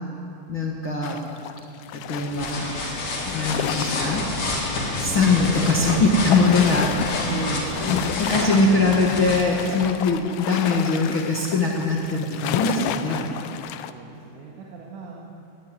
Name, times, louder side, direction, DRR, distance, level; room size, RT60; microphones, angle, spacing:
voice 1, 0.5-1.2 1.9-2.7 3.2-4.2 5.0-7.3 7.9-13.3, left 3 dB, 65° left, -2 dB, 1.2 m, -22 dB
sound 1, 1.0-4.4 4.6-4.7 5.0-13.9, left 12 dB, 90° left, 3.0 m, -32 dB
sound 2, 2.1-9.8, left 2 dB, 50° left, 4.6 m, -29 dB
voice 2, 7.3-7.8 13.9-15.4, right 2 dB, 75° right, -3 dB, 3.9 m, -36 dB
19.5 x 14.0 x 9.8 m, 2.9 s
omnidirectional pair, 5.2 m